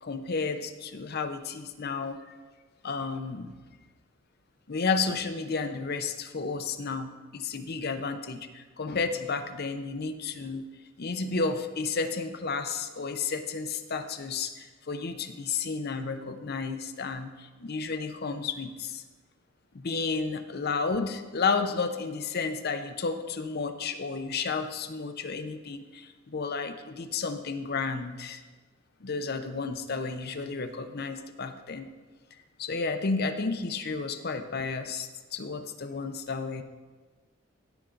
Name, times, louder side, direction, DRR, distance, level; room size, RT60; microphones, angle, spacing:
voice 1, 0.0-2.4 2.8-3.5 4.7-10.6 11.0-19.0 19.7-28.4 29.0-31.9 32.6-36.6, left 4 dB, 50° left, 8 dB, 0.7 m, -32 dB
16.0 x 5.7 x 3.9 m, 1.3 s
head